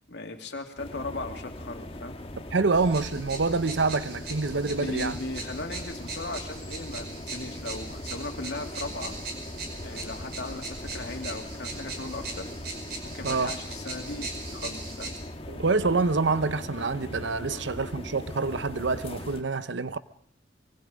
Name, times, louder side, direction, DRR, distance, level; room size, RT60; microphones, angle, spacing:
voice 1, 0.1-2.2 4.8-9.2 9.8-12.5 13.0-15.1 17.5-17.6, left 2 dB, 65° left, 2.7 m, -37 dB
sound 1, 0.8-19.4, left 1 dB, 30° left, 1.5 m, -40 dB
voice 2, 2.5-5.2 13.2-13.5 15.5-20.0, right 3 dB, 75° right, 0.8 m, -26 dB
sound 2, 2.7-15.2, right 3 dB, 55° right, 5.3 m, -40 dB
25.0 x 23.5 x 5.2 m
head